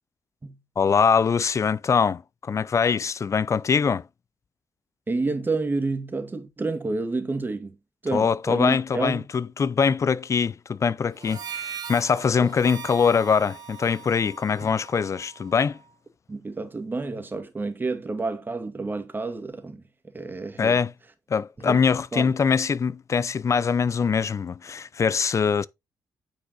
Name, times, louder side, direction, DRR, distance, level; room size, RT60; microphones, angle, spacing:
voice 1, 0.8-4.0 8.1-15.8 20.6-20.9 21.3-25.7, left 6 dB, 45° left, 0.5 m, -23 dB
voice 2, 5.1-7.8 8.0-9.2 14.6-14.7 16.3-19.8 20.1-20.8 21.6-21.8 22.1-22.3, right 3 dB, 25° right, 2.1 m, -29 dB
Harmonica, 11.1-15.8, right 7 dB, 65° right, 1.9 m, -40 dB
9.2 x 4.9 x 4.0 m
cardioid pair, 70°, 7 cm